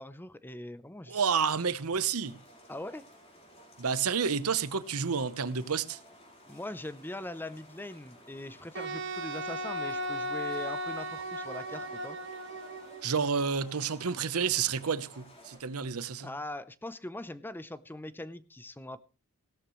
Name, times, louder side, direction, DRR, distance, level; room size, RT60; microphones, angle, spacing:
voice 1, 0.0-1.2 2.7-3.1 6.5-12.2 16.2-19.0, left 1 dB, 10° left, 0.6 m, -41 dB
voice 2, 1.1-2.4 3.8-6.0 13.0-16.3, right 6 dB, 80° right, 0.9 m, -30 dB
sound 1, 2.2-15.6, equal, 30° left, 4.1 m, -55 dB
Wind instrument woodwind instrument, 8.7-13.0, right 1 dB, 55° right, 1.4 m, -36 dB
17.0 x 13.0 x 3.1 m
head